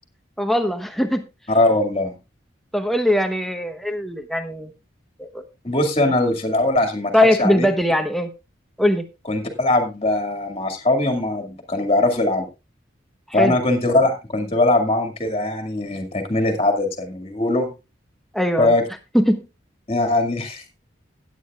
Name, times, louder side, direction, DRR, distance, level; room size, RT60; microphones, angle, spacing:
voice 1, 0.4-1.2 2.7-4.7 5.2-5.4 7.1-8.3 8.8-9.1 13.3-13.6 18.3-18.7 19.1-19.4, left 1 dB, ahead, 6 dB, 1.0 m, -20 dB
voice 2, 1.5-2.2 5.6-7.7 9.3-12.5 13.3-17.7 18.6-18.8 19.9-20.6, left 2 dB, 30° left, 5 dB, 2.1 m, -21 dB
16.5 x 9.1 x 2.4 m, 0.27 s
head